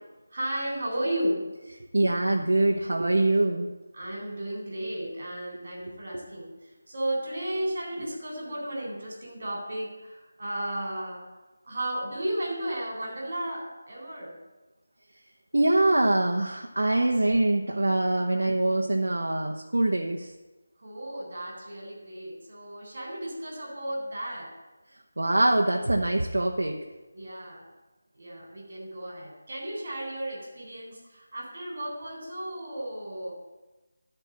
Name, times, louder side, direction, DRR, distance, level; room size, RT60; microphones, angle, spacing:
voice 1, 0.3-1.5 3.9-11.4 11.6-14.4 17.0-17.3 20.8-24.5 27.1-27.7 28.1-33.3, right 1 dB, 50° right, -1 dB, 3.8 m, -34 dB
voice 2, 1.9-3.7 15.5-20.3 25.2-26.8, right 2 dB, 90° right, 1 dB, 1.0 m, -24 dB
12.5 x 4.4 x 7.4 m, 1.1 s
figure-of-eight pair, 170°, 0 cm